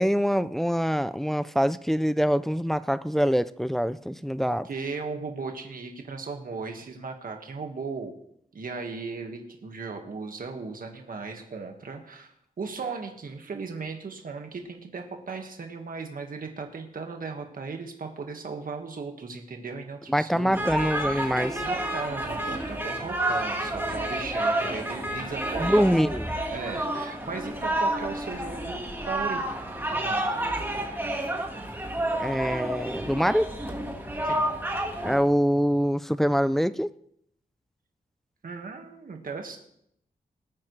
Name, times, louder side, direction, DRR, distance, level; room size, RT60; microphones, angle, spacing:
voice 1, 0.0-4.6 20.1-21.6 25.6-26.3 32.2-33.5 35.0-36.9, equal, ahead, 0.4 m, -24 dB
voice 2, 4.4-8.2 8.5-20.6 21.0-25.9 26.5-28.8 29.1-29.5 29.9-30.2 34.2-34.5 38.4-39.6, right 4 dB, 65° right, 1.7 m, -37 dB
sound 1, 20.5-35.2, right 1 dB, 15° right, 1.7 m, -30 dB
19.5 x 8.7 x 3.3 m
wide cardioid pair, 130°, 16 cm